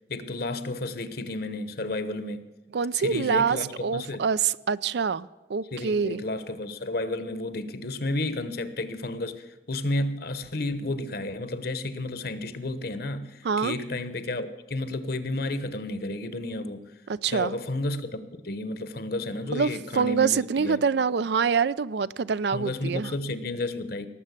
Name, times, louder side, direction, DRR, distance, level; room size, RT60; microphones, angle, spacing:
voice 1, 0.1-2.5 2.9-4.2 5.7-16.9 17.3-18.2 18.4-20.8 22.5-24.1, left 2 dB, 50° left, 1.1 m, -32 dB
voice 2, 2.7-6.2 13.4-13.7 17.2-17.5 19.5-23.1, right 6 dB, 60° right, 0.4 m, -25 dB
18.5 x 7.5 x 8.2 m
head